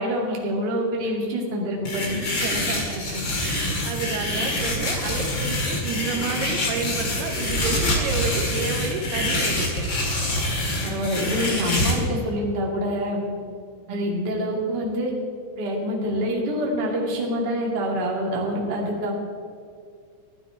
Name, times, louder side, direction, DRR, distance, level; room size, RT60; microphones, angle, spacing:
voice 1, 0.0-2.2 10.8-13.3 13.9-15.1 15.5-19.1, equal, 35° right, -2 dB, 2.1 m, -26 dB
sound 1, 1.9-11.9, left 1 dB, 40° left, 2.0 m, -26 dB
voice 2, 2.1-9.9 13.9-14.1, right 4 dB, 75° right, 3 dB, 3.0 m, -31 dB
sound 2, 5.8-10.9, right 1 dB, 20° left, 3.7 m, -45 dB
14.0 x 13.0 x 4.6 m, 2.2 s
omnidirectional pair, 4.8 m